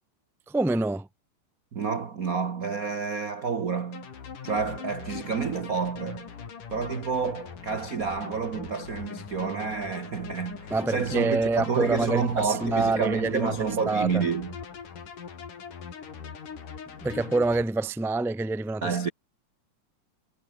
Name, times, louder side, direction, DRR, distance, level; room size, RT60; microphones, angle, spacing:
voice 1, 0.5-1.1 10.7-14.2 17.0-19.1, right 3 dB, ahead, 0.5 m, -27 dB
voice 2, 1.7-4.1 4.4-6.3 6.7-14.5 18.8-19.1, right 5 dB, 60° right, 0.9 m, -29 dB
sound 1, 3.9-17.6, left 6 dB, 85° left, 5.1 m, -41 dB
omnidirectional pair, 3.6 m